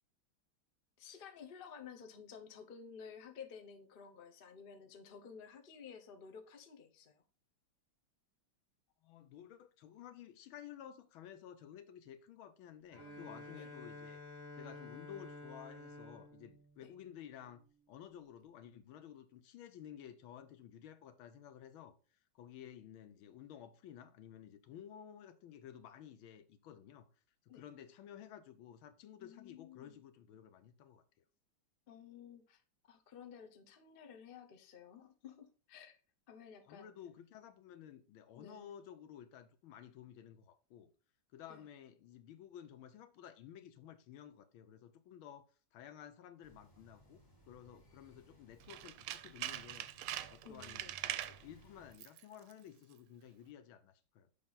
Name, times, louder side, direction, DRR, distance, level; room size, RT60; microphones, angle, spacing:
voice 1, 1.0-7.1 13.0-13.7 16.8-16.9 27.5-27.7 29.2-30.0 31.9-36.0 36.3-36.9 38.4-38.7 41.5-41.7 50.4-51.0, left 7 dB, 50° left, 0.6 m, -54 dB
voice 2, 9.0-14.2 14.5-22.0 22.3-27.1 27.5-31.0 36.6-40.9 41.3-49.9 50.3-54.3, left 9 dB, 75° left, 1.5 m, -54 dB
Bowed string instrument, 12.9-17.7, left 2 dB, 30° left, 2.0 m, -52 dB
sound 1, 46.4-51.9, right 1 dB, 10° left, 1.1 m, -63 dB
Tools, 48.6-51.4 51.9-52.2 52.5-52.6, right 13 dB, 85° right, 1.4 m, -42 dB
6.8 x 5.3 x 3.9 m
omnidirectional pair, 2.3 m